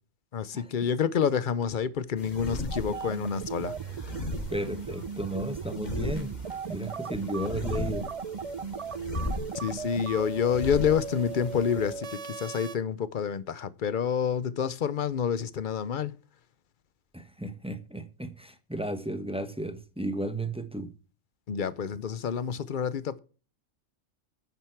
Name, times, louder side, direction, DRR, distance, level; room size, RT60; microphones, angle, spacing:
voice 1, 0.3-3.7 9.5-16.1 21.5-23.2, left 7 dB, 50° left, 0.7 m, -28 dB
sound 1, 2.2-12.0, left 2 dB, 35° left, 3.0 m, -38 dB
sound 2, 2.7-12.8, right 6 dB, 55° right, 0.3 m, -37 dB
voice 2, 4.5-6.4 6.7-8.1 17.1-20.9, right 1 dB, 5° right, 0.9 m, -34 dB
10.5 x 9.2 x 4.6 m
omnidirectional pair, 1.3 m